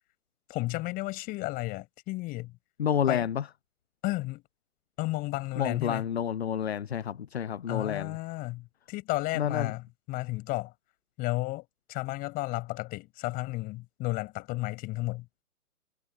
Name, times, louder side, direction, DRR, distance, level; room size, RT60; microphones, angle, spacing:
voice 1, 0.5-2.5 3.1-3.3 4.0-4.4 5.0-6.1 7.7-10.7 11.2-15.3, left 20 dB, 20° left, 4.7 m, -33 dB
voice 2, 2.8-3.5 5.6-8.2 9.3-9.7, left 8 dB, 45° left, 0.7 m, -29 dB
figure-of-eight pair, 135°, 46 cm